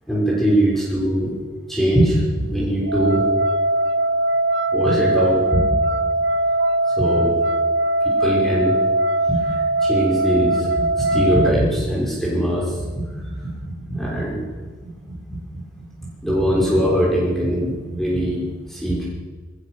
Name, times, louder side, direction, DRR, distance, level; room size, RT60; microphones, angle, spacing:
voice 1, 0.1-1.3 1.7-3.2 4.7-5.6 7.0-7.4 8.2-8.7 9.3-13.5 13.9-14.4 16.2-17.7 18.0-18.4 18.7-19.1, right 1 dB, ahead, -6 dB, 6.2 m, -21 dB
sound 1, 2.8-11.5, right 1 dB, 65° right, 1.1 m, -20 dB
22.0 x 20.5 x 6.6 m, 1.4 s
head